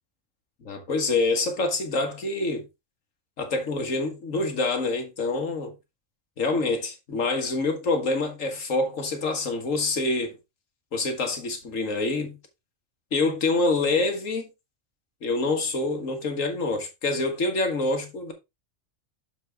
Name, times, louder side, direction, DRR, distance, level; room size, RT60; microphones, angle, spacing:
voice 1, 0.6-2.6 3.4-5.7 6.4-10.4 10.9-12.4 13.1-14.5 15.2-18.3, left 3 dB, 85° left, 1.9 m, -26 dB
6.9 x 6.3 x 3.3 m
omnidirectional pair, 1.3 m